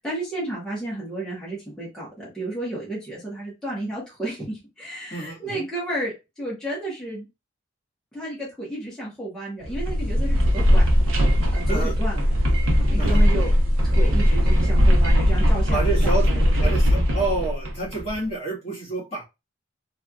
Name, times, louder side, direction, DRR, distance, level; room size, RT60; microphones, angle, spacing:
voice 1, 0.0-6.1 6.4-7.3 8.1-10.8 11.5-12.2 12.9-13.5 13.8-16.7, right 1 dB, 5° left, -8 dB, 1.2 m, -32 dB
voice 2, 5.1-5.6 11.7-11.9 13.0-13.2 15.7-16.3 16.6-19.2, right 3 dB, 30° left, -7 dB, 1.5 m, -29 dB
sound 1, 9.6-18.1, equal, 90° right, 0.8 m, -19 dB
3.3 x 2.7 x 2.3 m, 0.25 s
head